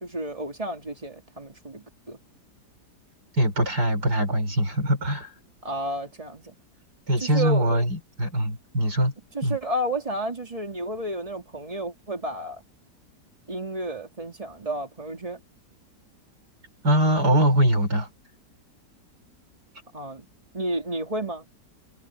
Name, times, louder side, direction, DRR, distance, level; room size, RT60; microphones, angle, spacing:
voice 1, 0.0-2.2 5.6-6.5 7.2-7.8 9.3-12.6 13.5-15.4 19.9-20.3 20.5-21.5, right 1 dB, 20° right, 2.8 m, -31 dB
voice 2, 3.4-5.3 7.1-9.1 9.4-9.6 16.8-18.1, equal, 65° right, 8.1 m, -22 dB
omnidirectional pair, 1.8 m